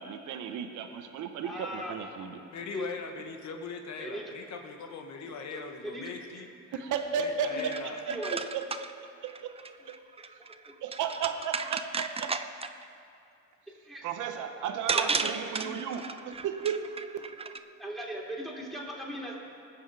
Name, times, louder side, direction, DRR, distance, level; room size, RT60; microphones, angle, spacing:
voice 1, 0.0-2.4 6.8-8.6 9.4-9.5 10.8-12.4 14.0-16.8 17.1-17.2, right 7 dB, 85° right, 6 dB, 0.9 m, -34 dB
voice 2, 1.4-2.1 2.7-2.9 4.0-4.3 5.5-6.4 6.7-6.8 7.5-7.6 8.1-8.4 10.2-10.5 13.8-14.0 14.9-15.3 15.6-15.7 17.8-19.4, right 1 dB, ahead, -3 dB, 3.0 m, -39 dB
voice 3, 2.5-6.5 7.1-8.1, left 4 dB, 65° left, 4 dB, 1.2 m, -40 dB
sound 1, 7.4-12.8 14.4-14.5 14.9-17.6, right 4 dB, 20° right, 0.5 m, -35 dB
20.0 x 7.1 x 4.7 m, 2.5 s
cardioid pair, 90°, 30 cm